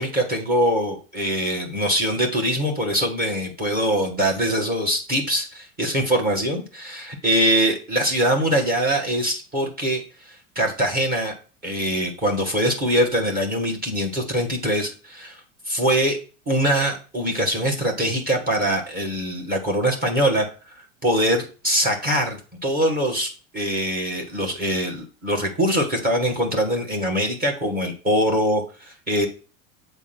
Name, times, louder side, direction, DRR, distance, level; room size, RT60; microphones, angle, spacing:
voice 1, 0.0-11.3 11.6-16.2 16.5-20.5 21.0-29.3, equal, 20° right, 2 dB, 1.8 m, -23 dB
8.0 x 3.6 x 6.2 m, 0.36 s
figure-of-eight pair, 80°, 42 cm